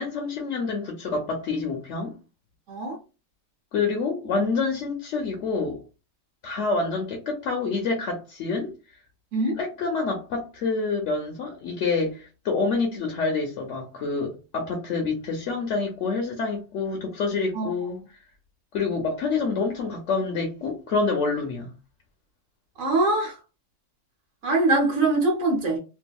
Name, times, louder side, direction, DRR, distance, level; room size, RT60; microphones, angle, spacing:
voice 1, 0.0-2.1 3.7-5.8 6.4-8.7 9.6-18.0 18.7-21.7, left 4 dB, 65° left, 0.9 m, -27 dB
voice 2, 2.7-3.0 9.3-9.6 17.5-17.7 22.8-23.4 24.4-25.8, right 2 dB, 75° right, 1.3 m, -23 dB
2.7 x 2.6 x 2.2 m
omnidirectional pair, 1.4 m